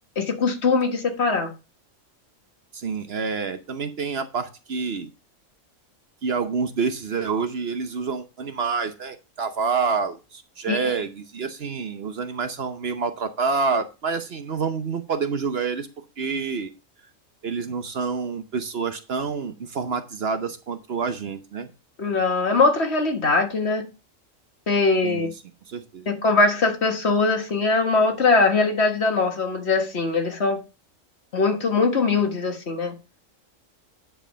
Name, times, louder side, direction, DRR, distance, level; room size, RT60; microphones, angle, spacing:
voice 1, 0.2-1.5 10.7-10.9 22.0-23.8 24.7-25.3 26.1-30.6 31.3-32.9, left 3 dB, 55° left, 1.9 m, -21 dB
voice 2, 2.7-5.1 6.2-15.9 16.2-16.7 17.4-21.7 25.0-25.3 25.7-26.1, right 5 dB, 55° right, 1.0 m, -28 dB
10.0 x 4.9 x 5.5 m
omnidirectional pair, 1.3 m